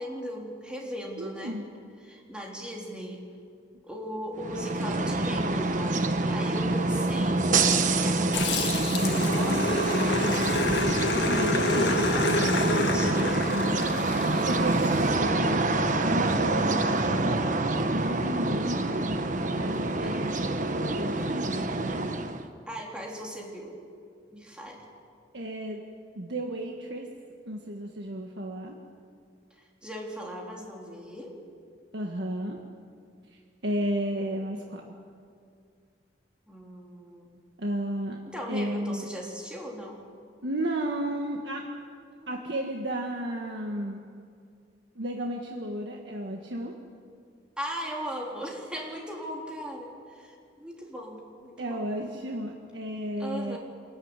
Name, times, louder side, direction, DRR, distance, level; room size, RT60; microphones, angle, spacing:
voice 1, 0.0-1.6 2.0-3.2 3.8-7.5 7.9-10.7 11.6-13.5 14.1-14.5 20.0-20.4 22.7-23.9 24.3-24.8 29.5-31.4 36.5-37.4 38.3-40.0 42.1-42.4 47.6-51.9 53.2-53.6, equal, 5° right, -2 dB, 3.5 m, -38 dB
voice 2, 1.2-1.6 11.2-12.0 14.2-17.5 17.9-19.0 19.5-20.3 20.7-22.0 25.3-25.8 26.1-27.1 27.5-28.8 31.9-32.6 33.6-35.0 37.6-38.2 38.5-39.1 40.4-41.7 42.3-44.0 44.9-46.7 51.6-53.6, right 1 dB, 80° right, 1 dB, 1.6 m, -33 dB
sound 1, 4.4-22.5, right 2 dB, 45° right, 1.1 m, -26 dB
Growling, 8.3-15.0, left 3 dB, 75° left, 1.7 m, -29 dB
25.5 x 14.0 x 9.7 m, 2.3 s
head